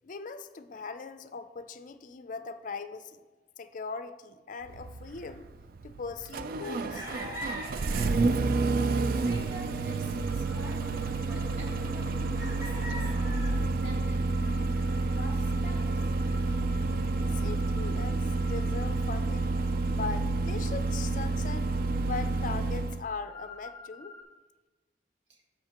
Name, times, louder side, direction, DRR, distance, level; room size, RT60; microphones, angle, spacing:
voice 1, 0.0-3.2 3.6-5.5 5.8-7.1 17.3-19.5 19.9-21.7 22.0-24.1, left 4 dB, 45° left, 10 dB, 0.4 m, -40 dB
Engine starting, 4.6-23.0, right 3 dB, 55° right, 0.3 m, -29 dB
sound 1, 6.6-13.6, equal, 20° right, 1.6 m, -43 dB
voice 2, 9.1-16.0 25.3-25.4, right 1 dB, 75° right, -1 dB, 1.8 m, -48 dB
sound 2, 10.1-19.2 23.2-24.2, left 3 dB, 10° left, 1.4 m, -52 dB
13.0 x 5.1 x 2.9 m, 1.3 s
head